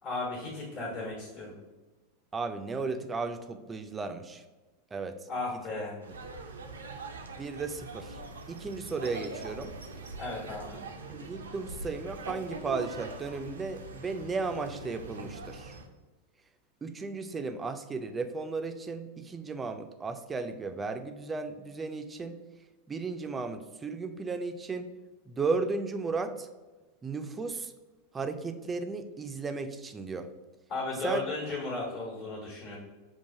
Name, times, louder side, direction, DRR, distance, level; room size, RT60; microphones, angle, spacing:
voice 1, 0.0-1.5 5.3-6.0 10.2-10.8 30.7-32.8, left 2 dB, 50° left, -2 dB, 1.2 m, -35 dB
voice 2, 2.3-4.4 4.9-5.2 7.4-8.2 8.5-9.7 11.1-15.8 16.8-22.4 22.9-24.9 25.3-26.5 27.0-27.7 28.1-30.3 31.0-31.2, right 4 dB, 20° right, 8 dB, 0.3 m, -35 dB
sound 1, 6.0-15.9, right 3 dB, 85° right, 0.4 m, -43 dB
5.4 x 2.4 x 2.7 m, 1.2 s
hypercardioid pair, 95°, 0 cm